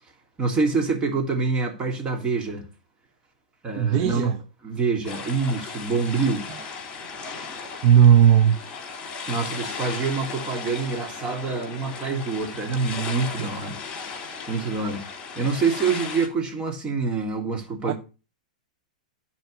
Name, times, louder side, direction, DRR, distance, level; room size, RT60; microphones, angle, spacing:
voice 1, 0.4-2.6 3.6-4.3 4.6-6.5 9.3-13.8 14.2-15.1 15.3-17.9, right 4 dB, 25° right, 3.0 m, -26 dB
voice 2, 3.8-4.4 7.8-8.6 17.9-18.0, right 9 dB, 45° right, 0.8 m, -16 dB
sound 1, 5.0-16.3, left 5 dB, 25° left, 4.1 m, -36 dB
11.0 x 4.5 x 8.0 m
hypercardioid pair, 115°, 4 cm